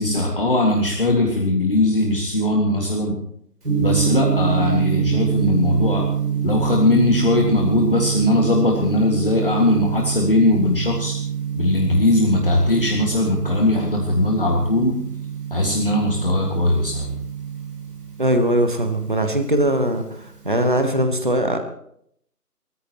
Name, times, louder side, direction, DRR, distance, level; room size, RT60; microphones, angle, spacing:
voice 1, 0.0-3.2 3.8-6.0 6.4-11.1 11.6-15.0 15.5-17.2, left 2 dB, 35° left, -1 dB, 2.0 m, -19 dB
Gong, 3.6-20.9, right 8 dB, 80° right, 5.4 m, -26 dB
voice 2, 18.2-21.6, right 1 dB, 30° right, 7 dB, 1.2 m, -20 dB
29.5 x 14.0 x 3.0 m, 0.70 s
figure-of-eight pair, 175°, 47 cm